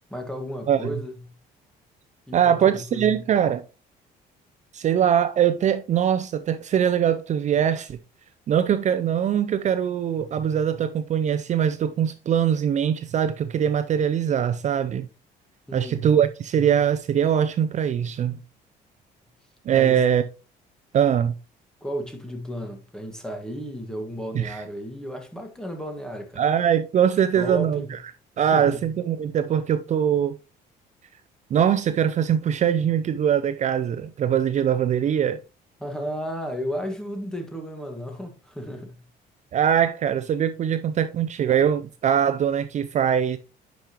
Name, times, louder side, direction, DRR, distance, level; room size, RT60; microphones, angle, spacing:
voice 1, 0.1-1.3 2.3-3.2 15.7-16.0 19.7-20.0 21.8-26.4 27.3-27.9 28.4-28.8 35.8-39.0, equal, 5° left, 1.7 m, -33 dB
voice 2, 2.3-3.6 4.7-8.0 8.5-15.1 15.7-18.4 19.7-20.2 20.9-21.3 24.3-24.6 26.4-28.0 28.4-30.4 31.5-35.4 39.5-43.4, right 9 dB, 45° right, 0.5 m, -22 dB
10.5 x 5.2 x 3.0 m
cardioid pair, 110°, 17 cm